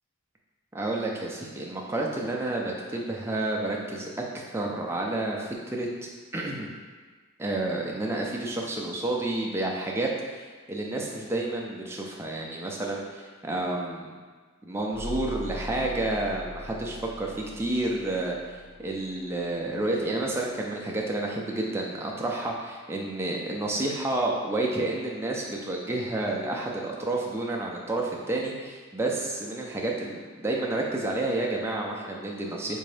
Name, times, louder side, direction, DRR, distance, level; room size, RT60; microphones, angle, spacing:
voice 1, 0.7-4.1 4.3-6.7 7.4-14.1 14.6-18.4 18.8-32.8, right 2 dB, 10° right, -2 dB, 0.3 m, -30 dB
sound 1, 14.9-19.6, left 1 dB, 60° left, 0.4 m, -40 dB
3.7 x 2.6 x 3.2 m, 1.5 s
head